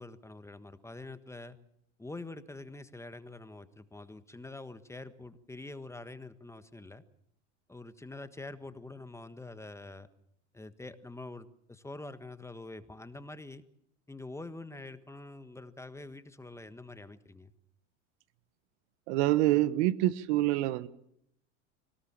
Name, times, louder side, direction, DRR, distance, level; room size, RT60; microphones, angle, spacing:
voice 1, 0.0-1.6 2.0-7.0 7.7-10.1 10.5-13.6 14.1-17.5, left 2 dB, 10° left, 12 dB, 1.4 m, -45 dB
voice 2, 19.1-20.9, right 16 dB, 70° right, 16 dB, 1.2 m, -26 dB
25.0 x 18.5 x 7.5 m, 0.73 s
supercardioid pair, 100°, 36 cm